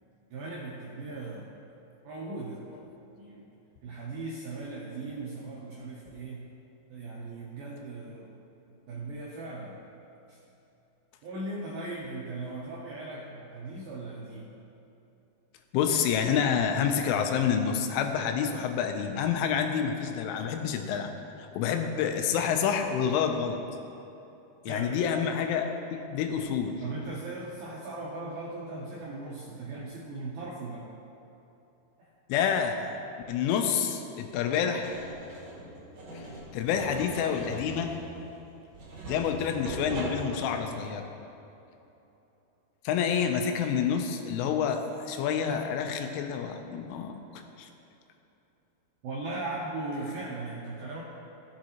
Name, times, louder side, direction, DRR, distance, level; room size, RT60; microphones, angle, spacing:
voice 1, 0.3-1.5 2.0-2.6 3.2-3.5 3.8-6.5 6.9-8.4 8.7-9.8 10.3-10.4 11.2-14.5 24.7-25.0 26.8-30.9 32.0-32.1 49.0-51.0, right 2 dB, 85° right, -4 dB, 2.1 m, -38 dB
voice 2, 15.7-21.1 21.4-23.6 24.7-26.8 32.3-32.9 33.3-34.9 36.1-36.3 36.5-38.0 39.1-41.1 42.8-47.7, left 7 dB, 90° left, 5 dB, 3.3 m, -28 dB
sound 1, 34.8-40.7, right 1 dB, 45° right, 2.8 m, -40 dB
15.5 x 7.4 x 2.9 m, 2.9 s
omnidirectional pair, 5.5 m